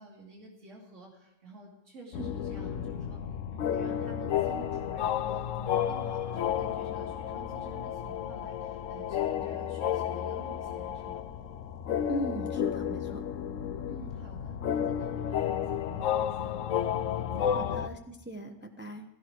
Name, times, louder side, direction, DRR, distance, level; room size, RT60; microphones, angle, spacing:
voice 1, 0.0-11.2 13.9-16.6 17.1-17.6, right 3 dB, 75° right, -2 dB, 3.0 m, -50 dB
sound 1, 2.1-17.9, left 9 dB, 90° left, 1.1 m, -32 dB
voice 2, 12.1-13.2 17.5-19.0, right 1 dB, 10° right, 3 dB, 1.1 m, -39 dB
17.0 x 15.0 x 4.7 m, 0.93 s
omnidirectional pair, 1.3 m